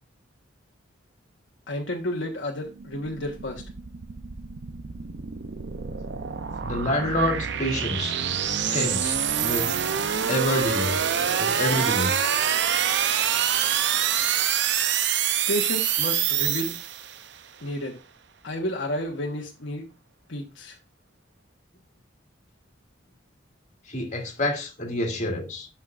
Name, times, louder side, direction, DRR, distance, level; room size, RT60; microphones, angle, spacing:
voice 1, 1.7-3.6 15.5-16.7 17.6-18.0 18.4-19.9 20.3-20.8, left 1 dB, 70° left, 1.3 m, -31 dB
sound 1, 2.7-17.3, right 8 dB, 65° right, 0.6 m, -26 dB
voice 2, 6.6-8.2 8.7-9.7 10.3-11.0 11.4-12.1 23.9-25.7, left 1 dB, 40° left, 2.1 m, -27 dB
11.5 x 5.8 x 2.5 m
head